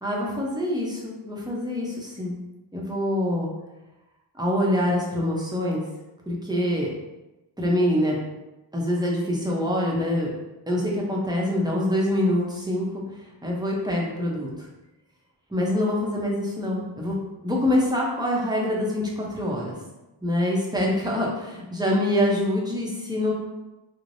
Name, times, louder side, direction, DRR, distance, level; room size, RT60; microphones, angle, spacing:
voice 1, 0.0-2.4 2.7-3.5 4.4-5.8 6.3-6.9 7.6-8.2 8.7-10.3 10.7-13.0 13.4-14.5 15.5-17.2 17.4-19.8 20.2-23.3, left 1 dB, 10° right, -3 dB, 0.7 m, -25 dB
3.2 x 2.0 x 2.6 m, 1.0 s
wide cardioid pair, 65°, 49 cm